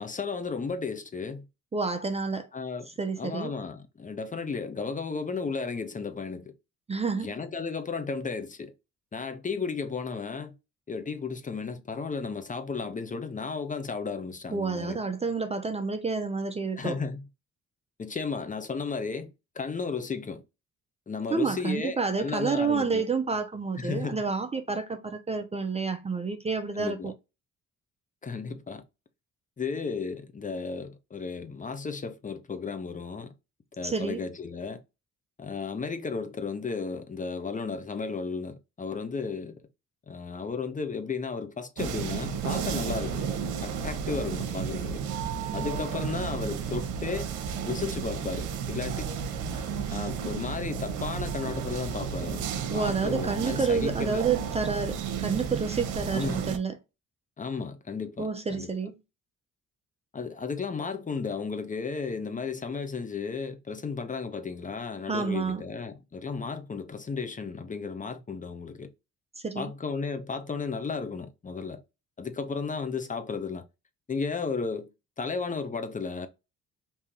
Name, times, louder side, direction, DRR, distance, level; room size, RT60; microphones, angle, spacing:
voice 1, 0.0-1.5 2.5-2.9 3.2-6.5 7.2-8.7 9.1-10.5 10.9-15.0 16.8-17.3 18.0-19.3 19.6-20.4 21.1-23.0 23.8-24.2 26.8-27.1 28.2-28.8 29.6-33.3 33.8-34.8 35.4-39.6 40.1-43.3 43.6-45.0 45.5-47.3 47.6-49.1 49.9-54.2 56.1-56.4 57.4-58.7 60.1-68.9 69.6-71.8 72.2-73.7 74.1-74.9 75.2-76.3, left 5 dB, 25° left, 0.6 m, -34 dB
voice 2, 1.7-2.5 3.0-3.5 6.9-7.3 14.5-17.0 21.3-27.1 33.8-34.2 52.7-56.7 58.2-58.9 65.1-65.6 69.4-69.7, right 4 dB, 20° right, 0.5 m, -29 dB
sound 1, 41.8-56.6, right 7 dB, 85° right, 0.8 m, -32 dB
3.6 x 2.8 x 2.8 m
cardioid pair, 90°, 30 cm